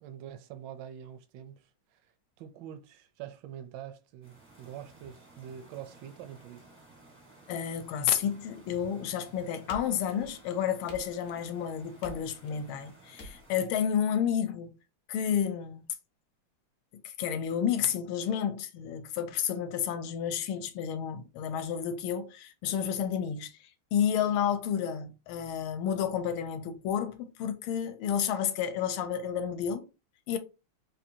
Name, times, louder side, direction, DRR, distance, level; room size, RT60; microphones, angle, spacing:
voice 1, 0.0-2.1 2.4-6.7, right 10 dB, 75° right, 1.0 m, -45 dB
sound 1, 4.2-13.6, right 2 dB, 15° right, 0.4 m, -56 dB
voice 2, 7.5-14.8 15.1-15.9 17.0-23.5 23.9-29.9 30.3-30.4, left 8 dB, 80° left, 1.4 m, -31 dB
sound 2, 9.7-10.5 10.9-11.5 12.0-12.6 13.2-13.7, equal, 60° left, 0.8 m, -48 dB
4.3 x 2.6 x 2.7 m
omnidirectional pair, 2.4 m